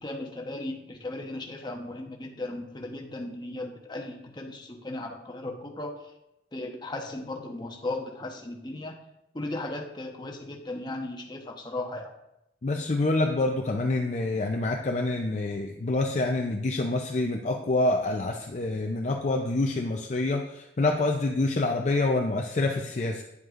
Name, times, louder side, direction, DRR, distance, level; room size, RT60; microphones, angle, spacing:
voice 1, 0.0-5.9 6.5-9.0 9.3-12.1, left 2 dB, 25° left, 2 dB, 0.9 m, -36 dB
voice 2, 12.6-23.2, left 2 dB, 40° left, 2 dB, 0.5 m, -27 dB
9.4 x 7.7 x 2.5 m, 0.86 s
head